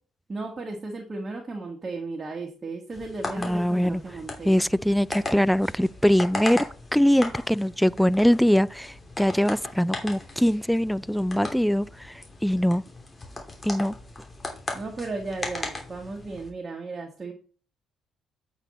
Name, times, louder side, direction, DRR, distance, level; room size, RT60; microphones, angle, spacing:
voice 1, 0.3-4.6 14.7-17.3, right 3 dB, 35° right, 1.6 m, -35 dB
sound 1, 2.9-16.5, left 2 dB, 30° left, 2.9 m, -38 dB
voice 2, 3.4-4.0 4.4-6.6 6.9-12.8 13.6-13.9, equal, ahead, 0.4 m, -22 dB
8.2 x 5.3 x 4.2 m
hypercardioid pair, 50°, 0 cm